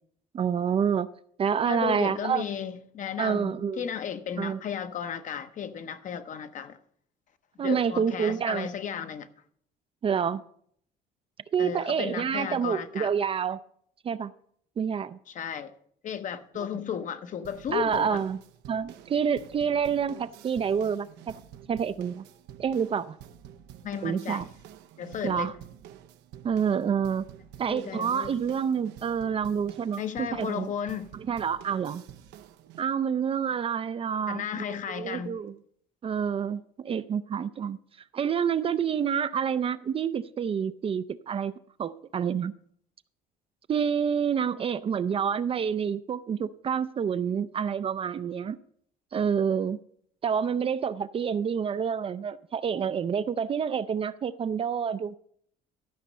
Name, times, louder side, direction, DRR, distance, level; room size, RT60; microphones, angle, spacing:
voice 1, 0.3-1.1 1.4-2.4 3.2-3.8 4.4-4.6 7.6-8.7 10.0-10.4 11.5-13.6 14.0-14.3 14.8-15.2 17.7-18.4 18.7-21.3 21.7-22.2 22.6-23.2 24.0-24.5 25.2-25.5 26.4-27.3 27.6-30.7 31.3-32.0 32.8-35.5 36.0-37.8 38.1-41.5 41.8-42.5 43.7-48.6 49.1-49.8 50.2-55.2, right 7 dB, 35° right, 0.4 m, -28 dB
voice 2, 1.7-6.8 7.6-9.3 11.6-13.1 15.3-15.7 16.0-18.2 23.8-24.5 25.0-25.5 27.7-28.4 30.0-31.1 34.3-35.4, left 8 dB, 50° left, 0.8 m, -34 dB
sound 1, 17.4-32.8, right 10 dB, 90° right, 0.7 m, -49 dB
13.0 x 5.2 x 6.5 m
cardioid pair, 110°, 17 cm